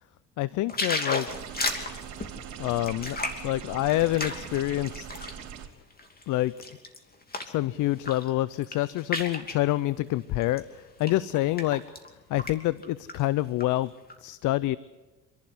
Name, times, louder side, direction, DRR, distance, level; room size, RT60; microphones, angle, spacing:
voice 1, 0.4-1.3 2.6-3.2 3.4-5.1 6.3-6.5 7.5-11.8 12.3-13.9 14.2-14.8, left 16 dB, 80° left, 18 dB, 0.6 m, -27 dB
sound 1, 0.7-5.4 5.9-7.6 7.9-8.3 8.5-9.6 10.4-10.6 11.0-12.1 12.4-12.5 12.8-13.6 14.1-14.2, left 2 dB, 30° left, 2.9 m, -33 dB
sound 2, 1.3-5.7, right 8 dB, 70° right, 3.0 m, -41 dB
27.0 x 11.5 x 9.8 m, 1.2 s
cardioid pair, 85°, 30 cm